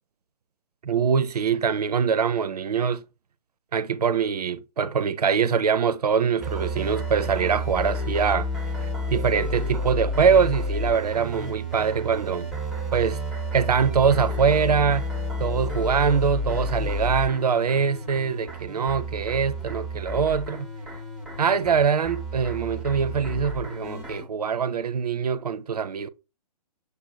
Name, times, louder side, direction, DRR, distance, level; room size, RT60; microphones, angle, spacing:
voice 1, 0.8-3.0 3.7-8.5 9.1-12.5 12.9-13.2 13.5-15.1 15.4-20.7 21.4-26.1, right 6 dB, 70° right, 0.4 m, -23 dB
sound 1, 6.4-24.2, left 1 dB, ahead, 0.7 m, -31 dB
6.5 x 2.5 x 2.7 m
figure-of-eight pair, 125°, 20 cm